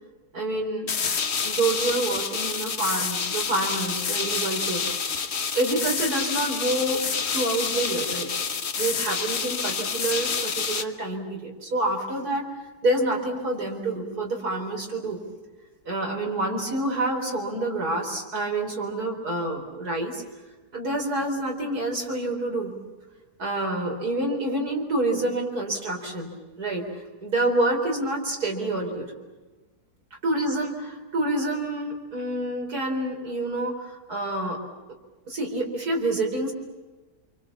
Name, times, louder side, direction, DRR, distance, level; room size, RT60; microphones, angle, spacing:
voice 1, 0.3-0.9 1.4-4.8 5.5-8.3 8.8-12.5 12.8-15.2 15.8-20.2 20.7-22.7 23.4-26.3 26.6-29.1 30.2-34.6 35.3-36.5, right 2 dB, 65° right, 0 dB, 4.8 m, -27 dB
sound 1, 0.9-10.8, left 5 dB, 45° left, 1.3 m, -28 dB
28.0 x 25.0 x 7.3 m, 1.2 s
omnidirectional pair, 1.8 m